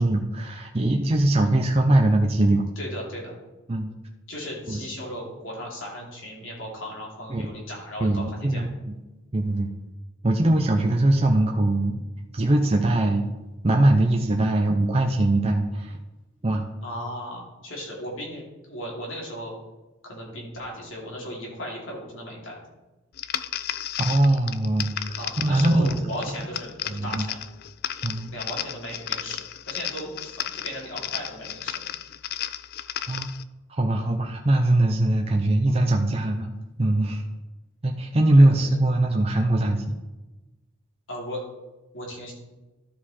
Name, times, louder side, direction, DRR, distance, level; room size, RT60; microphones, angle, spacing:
voice 1, 0.0-2.6 3.7-3.9 4.7-4.8 7.3-7.5 8.0-8.9 9.3-9.7 10.2-12.0 12.3-13.3 13.6-16.0 16.4-16.7 24.0-26.1 26.9-27.2 28.0-28.3 33.1-33.3 33.7-36.5 36.8-37.2 37.8-40.0, right 1 dB, 30° right, 2 dB, 0.6 m, -21 dB
voice 2, 2.8-3.3 4.3-8.6 16.8-19.5 20.0-22.6 25.2-27.4 28.3-31.8 38.4-38.7 41.1-41.5 41.9-42.3, equal, 70° left, -3 dB, 2.9 m, -36 dB
sound 1, 23.2-33.4, left 11 dB, 45° left, 0.3 m, -34 dB
13.0 x 4.9 x 4.3 m, 1.1 s
head